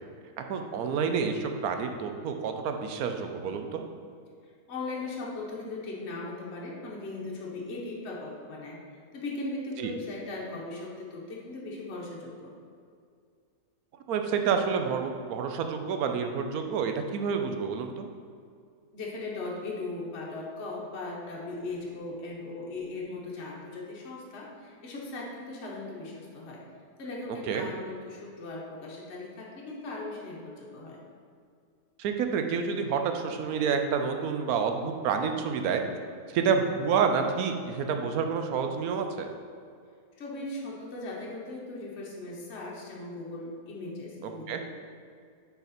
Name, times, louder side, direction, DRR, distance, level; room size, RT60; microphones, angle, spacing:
voice 1, 0.5-3.8 9.8-9.9 14.1-18.1 27.5-27.7 32.0-35.8 36.3-39.3 44.2-44.6, right 6 dB, 70° right, 6 dB, 1.0 m, -29 dB
voice 2, 4.7-12.5 18.9-26.6 27.0-31.0 40.2-44.6, left 2 dB, 45° left, -3 dB, 1.2 m, -38 dB
6.4 x 4.9 x 4.3 m, 2.2 s
omnidirectional pair, 1.8 m